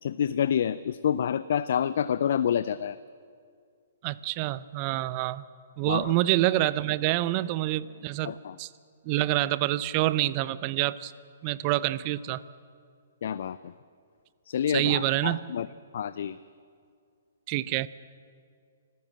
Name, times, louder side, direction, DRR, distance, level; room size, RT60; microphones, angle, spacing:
voice 1, 0.0-3.0 5.9-6.2 8.2-8.6 13.2-13.7 14.5-15.7 15.9-16.4, left 9 dB, 60° left, 15 dB, 0.5 m, -28 dB
voice 2, 4.0-5.5 5.8-8.3 8.6-8.7 9.1-11.1 11.4-12.4 14.7-15.4 17.5-17.9, right 16 dB, 35° right, 17 dB, 0.6 m, -27 dB
26.0 x 15.0 x 7.6 m, 2.3 s
hypercardioid pair, 130°, 0 cm